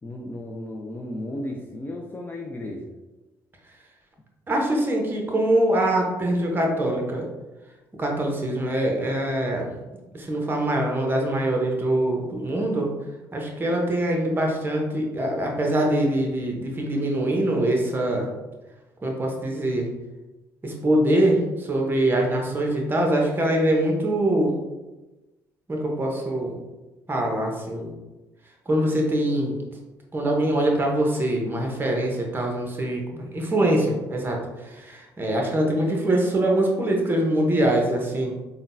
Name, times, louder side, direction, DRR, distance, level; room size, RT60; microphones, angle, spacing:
voice 1, 0.0-2.9, left 1 dB, 25° left, -1 dB, 0.5 m, -34 dB
voice 2, 4.5-7.3 8.0-9.7 10.1-12.9 13.3-18.3 19.0-19.9 20.6-24.5 25.7-26.6 27.1-27.9 28.7-29.6 30.1-38.4, right 1 dB, 25° right, 0 dB, 0.9 m, -23 dB
3.7 x 2.2 x 2.6 m, 1.1 s
hypercardioid pair, 60°, 8 cm